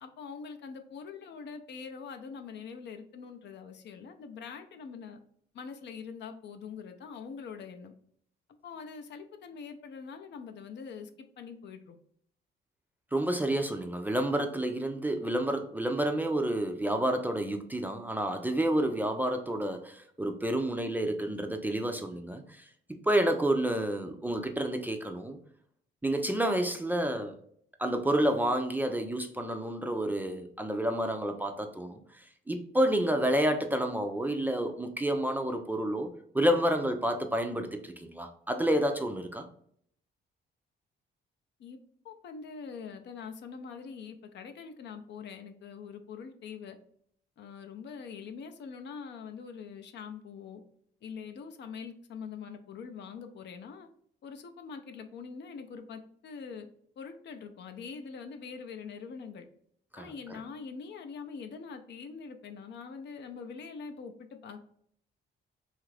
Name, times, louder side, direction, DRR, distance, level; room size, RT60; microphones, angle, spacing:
voice 1, 0.0-5.2 5.5-7.9 8.6-11.1 11.4-12.0 41.6-41.8 42.0-46.8 47.4-50.6 51.0-53.9 54.2-56.7 57.0-59.5 60.0-64.6, left 5 dB, 65° left, 6 dB, 0.5 m, -44 dB
voice 2, 13.1-22.6 23.1-25.4 26.0-27.3 27.8-32.0 32.5-39.4 59.9-60.4, right 1 dB, 10° right, 4 dB, 0.4 m, -29 dB
2.8 x 2.4 x 3.2 m, 0.65 s
cardioid pair, 90°, 20 cm